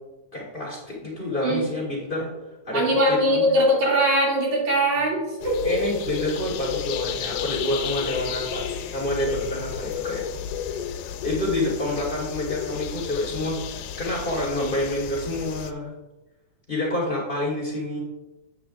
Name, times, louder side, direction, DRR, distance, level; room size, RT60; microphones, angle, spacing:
voice 1, 0.3-2.3 2.7-3.6 5.6-10.2 10.8-15.9 16.7-18.0, left 1 dB, 55° left, -4 dB, 0.5 m, -28 dB
voice 2, 1.3-1.7 2.7-5.8, equal, 85° right, -5 dB, 4.0 m, -21 dB
birds such forest pigeon singing, 5.4-15.7, left 8 dB, 85° left, 2.0 m, -32 dB
8.7 x 7.4 x 2.5 m, 1.1 s
omnidirectional pair, 3.4 m